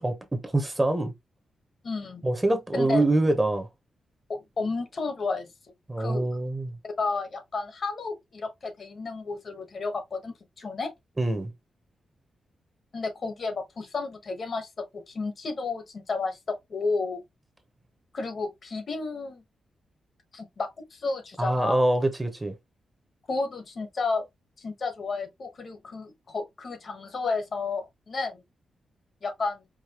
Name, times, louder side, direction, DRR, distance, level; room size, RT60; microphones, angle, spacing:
voice 1, 0.0-1.1 2.2-3.7 5.9-6.7 11.2-11.5 21.4-22.5, right 2 dB, 10° right, 0.8 m, -25 dB
voice 2, 1.8-2.3 2.7-3.1 4.3-5.5 6.0-6.2 6.8-10.9 12.9-17.2 18.1-19.4 20.3-21.9 23.3-24.2 24.6-28.4 29.2-29.6, left 3 dB, 45° left, 1.1 m, -32 dB
5.0 x 2.7 x 2.9 m
wide cardioid pair, 135°, 0 cm